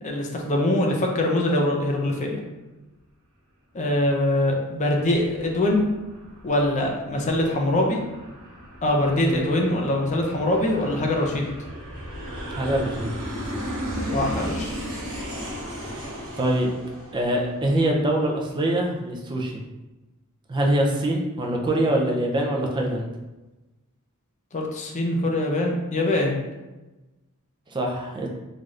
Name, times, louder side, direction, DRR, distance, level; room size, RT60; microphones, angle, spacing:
voice 1, 0.0-2.4 3.7-5.9 6.4-8.0 8.8-11.5 14.1-14.7 24.5-26.4, left 1 dB, 35° left, 1 dB, 0.5 m, -23 dB
Aircraft, 5.1-18.1, equal, 70° right, 1.3 m, -35 dB
voice 2, 12.5-13.1 16.4-16.7 17.1-19.6 20.5-23.1 27.7-28.3, right 1 dB, 20° right, 0 dB, 0.4 m, -24 dB
3.3 x 2.6 x 2.4 m, 1.1 s
head